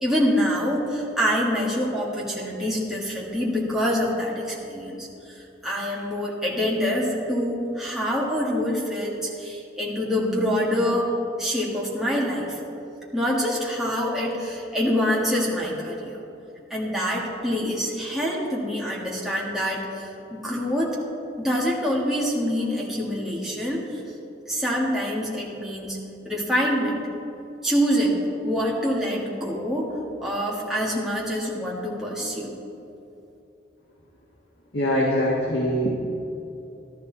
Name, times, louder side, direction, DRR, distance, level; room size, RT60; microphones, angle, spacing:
voice 1, 0.0-11.1 11.4-12.6 13.1-16.2 16.7-21.0 21.4-24.0 24.5-26.0 26.2-27.0 27.6-29.9 30.2-32.6, equal, ahead, -5 dB, 1.9 m, -26 dB
voice 2, 34.7-35.9, equal, 70° left, -4 dB, 1.7 m, -23 dB
12.5 x 12.5 x 4.1 m, 2.8 s
head